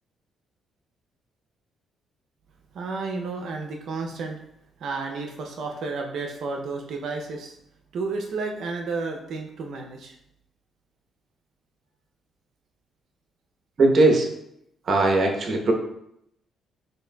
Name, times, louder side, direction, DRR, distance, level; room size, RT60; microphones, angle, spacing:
voice 1, 2.7-4.4 4.8-7.6 7.9-10.1, right 3 dB, 70° right, 2 dB, 0.5 m, -32 dB
voice 2, 13.8-14.3 14.9-15.7, right 2 dB, 50° right, 2 dB, 0.8 m, -19 dB
6.1 x 2.6 x 2.2 m, 0.76 s
cardioid pair, 90°, 0 cm